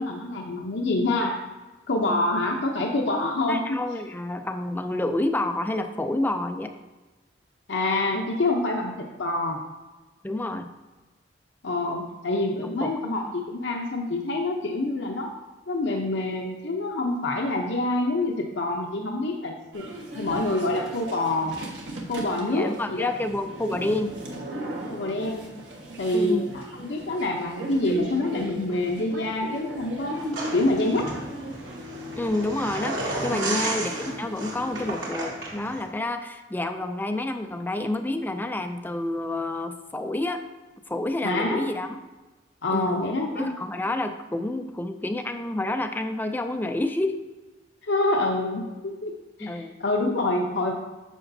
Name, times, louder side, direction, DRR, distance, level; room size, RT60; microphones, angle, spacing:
voice 1, 0.0-1.4 1.9-3.6 7.7-9.6 11.6-15.3 15.7-19.9 20.1-21.6 22.1-23.1 24.9-25.5 26.0-30.1 30.5-31.1 33.3-33.6 41.2-41.7 42.6-43.5 47.8-49.1 49.4-50.7, left 2 dB, 70° left, 0 dB, 0.8 m, -26 dB
voice 2, 3.5-6.7 10.2-10.7 12.6-13.1 22.5-24.2 26.1-26.5 32.2-40.4 40.9-42.0 42.7-43.0 43.4-47.2 49.4-49.8, left 1 dB, 10° left, 6 dB, 0.4 m, -29 dB
sound 1, 19.7-35.0, right 1 dB, 70° right, 1.4 m, -37 dB
sound 2, 30.3-35.8, right 2 dB, 90° right, 2.3 m, -33 dB
9.9 x 6.7 x 2.7 m, 1.2 s
head